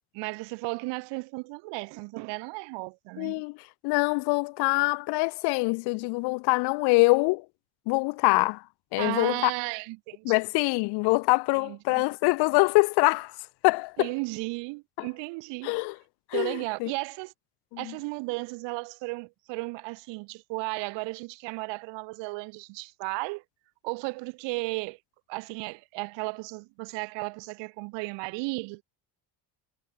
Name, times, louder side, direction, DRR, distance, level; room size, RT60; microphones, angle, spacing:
voice 1, 0.1-3.4 9.0-10.3 11.5-12.0 14.0-15.7 16.3-17.3 17.8-23.4 23.8-25.0 25.3-28.8, right 27 dB, 85° right, 1.5 m, -34 dB
voice 2, 3.2-3.6 3.8-7.5 7.9-8.6 8.9-9.5 10.2-13.4 13.6-14.1 15.0-15.1 15.6-16.0 16.3-16.9 17.7-17.9, left 27 dB, 65° left, 0.6 m, -24 dB
cardioid pair, 175°, 42 cm